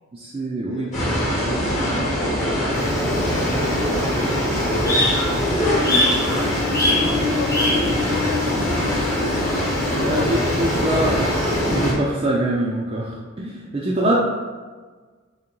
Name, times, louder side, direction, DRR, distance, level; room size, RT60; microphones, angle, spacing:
voice 1, 0.1-1.3 1.8-2.2 10.0-14.2, right 1 dB, 25° right, -4 dB, 0.3 m, -24 dB
voice 2, 0.6-1.0 1.8-5.4 6.0-6.6 7.1-9.3 9.9-10.4 14.0-14.2, left 5 dB, 70° left, 8 dB, 0.3 m, -36 dB
sound 1, 0.9-11.9, equal, 35° left, 1.0 m, -23 dB
sound 2, 2.7-11.9, left 1 dB, 15° left, 0.7 m, -25 dB
3.3 x 2.9 x 3.7 m, 1.4 s
head